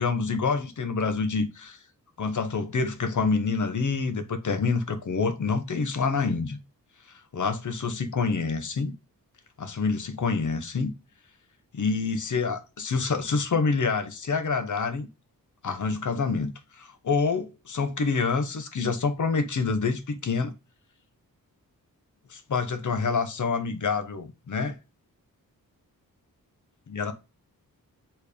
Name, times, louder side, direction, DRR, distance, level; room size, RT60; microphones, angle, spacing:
voice 1, 0.0-1.8 2.2-6.6 7.1-8.9 9.6-10.9 11.7-15.1 15.6-20.5 22.3-24.7 26.9-27.1, left 4 dB, 55° left, 1.1 m, -27 dB
7.0 x 3.5 x 5.0 m
wide cardioid pair, 135°, 35 cm